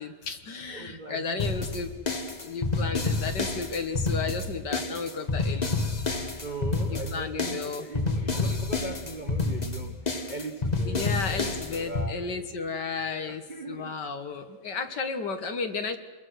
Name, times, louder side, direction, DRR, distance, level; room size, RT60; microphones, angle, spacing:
voice 1, 0.0-2.0 2.4-5.7 6.9-7.8 10.9-13.4 13.7-16.0, left 4 dB, 60° left, 8 dB, 1.9 m, -33 dB
voice 2, 0.7-1.7 2.8-3.0 6.4-12.5 13.2-14.0, right 3 dB, 30° right, 5 dB, 1.1 m, -40 dB
sound 1, 1.4-12.1, left 3 dB, 25° left, 1.2 m, -29 dB
27.5 x 22.0 x 6.3 m, 1.3 s
omnidirectional pair, 2.2 m